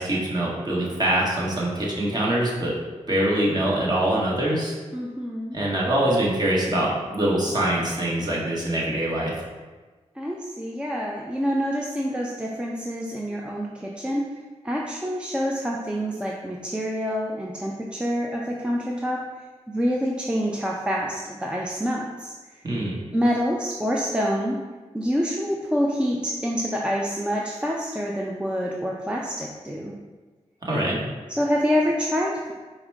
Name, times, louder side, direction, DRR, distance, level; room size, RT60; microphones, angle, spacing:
voice 1, 0.0-2.7 3.1-4.7 5.5-9.3 22.6-23.0 30.6-31.1, right 1 dB, 35° right, -5 dB, 1.3 m, -24 dB
voice 2, 4.9-5.6 10.2-14.2 14.6-19.2 19.7-22.3 23.1-24.6 24.9-29.9 31.3-32.5, equal, 10° right, -2 dB, 0.5 m, -26 dB
4.9 x 2.1 x 4.6 m, 1.3 s
cardioid pair, 65°, 12 cm